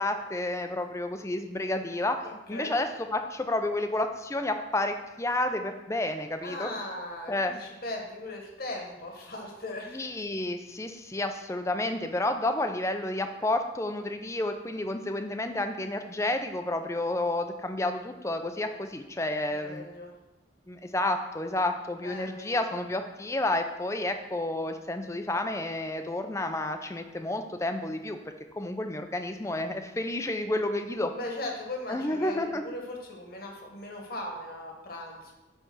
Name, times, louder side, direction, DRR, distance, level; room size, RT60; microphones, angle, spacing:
voice 1, 0.0-6.7 7.3-7.5 9.9-19.9 20.7-28.2 28.5-31.1 31.9-32.6, left 1 dB, 15° left, 6 dB, 0.5 m, -30 dB
voice 2, 2.2-2.7 6.4-10.0 19.5-20.1 22.0-22.5 31.1-35.3, left 1 dB, 50° left, 0 dB, 1.4 m, -38 dB
9.9 x 3.4 x 6.1 m, 1.0 s
head